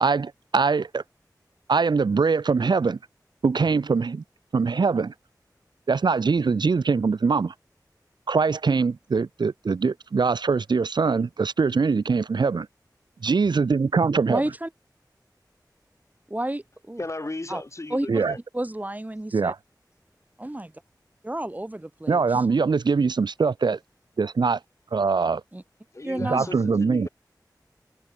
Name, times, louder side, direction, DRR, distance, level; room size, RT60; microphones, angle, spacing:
voice 1, 0.0-1.0 1.7-3.0 3.4-4.2 4.5-5.1 5.9-7.5 8.3-12.7 13.2-14.4 18.1-18.3 19.3-19.6 22.1-23.8 24.2-24.6 24.9-25.4 26.2-27.1, right 4 dB, 90° right, 0.6 m, -22 dB
voice 2, 14.3-14.7 16.3-17.0 17.5-17.6 17.9-18.2 18.5-19.5 20.4-20.7 21.2-22.4 25.5-25.6 26.0-26.5, right 1 dB, 20° right, 1.2 m, -31 dB
voice 3, 17.0-18.4 25.9-27.1, left 2 dB, 40° left, 3.1 m, -35 dB
wide cardioid pair, 70°, 7 cm